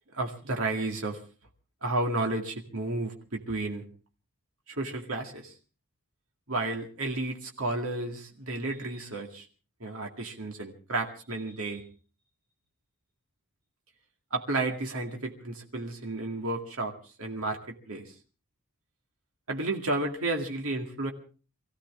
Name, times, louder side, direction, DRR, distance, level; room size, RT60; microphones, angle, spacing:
voice 1, 0.1-1.2 1.8-3.8 4.7-5.5 6.5-9.5 9.8-11.8 14.3-16.9 17.2-18.1 19.5-21.1, right 2 dB, 65° right, 2 dB, 2.1 m, -32 dB
24.5 x 16.0 x 3.7 m, 0.37 s
head